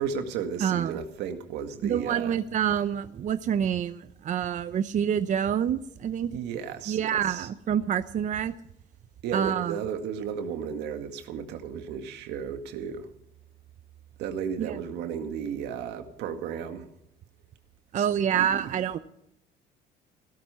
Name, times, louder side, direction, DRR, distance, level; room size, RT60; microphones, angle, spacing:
voice 1, 0.0-2.4 6.3-7.5 9.2-13.1 14.2-16.9 17.9-18.1 18.3-18.5, right 7 dB, 85° right, 7 dB, 2.0 m, -34 dB
voice 2, 0.6-1.0 1.8-6.3 6.9-8.5 9.3-9.8 14.6-14.8 17.9-19.0, right 9 dB, 45° right, 12 dB, 0.7 m, -27 dB
16.5 x 12.5 x 5.8 m, 0.77 s
cardioid pair, 110°, 17 cm